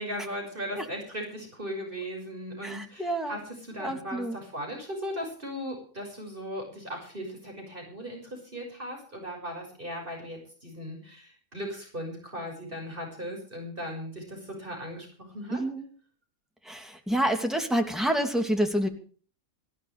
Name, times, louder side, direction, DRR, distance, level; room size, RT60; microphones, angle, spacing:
voice 1, 0.0-15.6, equal, 35° right, 1 dB, 6.5 m, -38 dB
voice 2, 2.6-3.4 3.8-4.4 15.5-15.9 16.7-18.9, right 1 dB, ahead, 4 dB, 2.6 m, -28 dB
19.5 x 16.0 x 3.4 m, 0.43 s
omnidirectional pair, 1.5 m